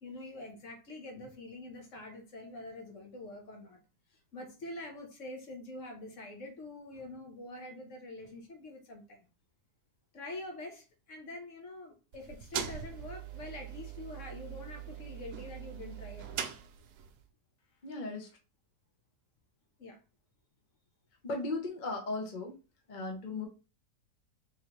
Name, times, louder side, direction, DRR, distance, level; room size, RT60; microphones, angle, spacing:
voice 1, 0.0-3.8 4.3-9.3 10.1-16.5 19.8-20.0, left 2 dB, 55° left, 1.2 m, -45 dB
sound 1, 12.1-17.2, right 9 dB, 85° right, 1.1 m, -42 dB
voice 2, 17.8-18.4 21.2-22.6 22.9-23.5, left 3 dB, 40° left, 0.8 m, -36 dB
3.8 x 3.1 x 3.1 m
omnidirectional pair, 1.7 m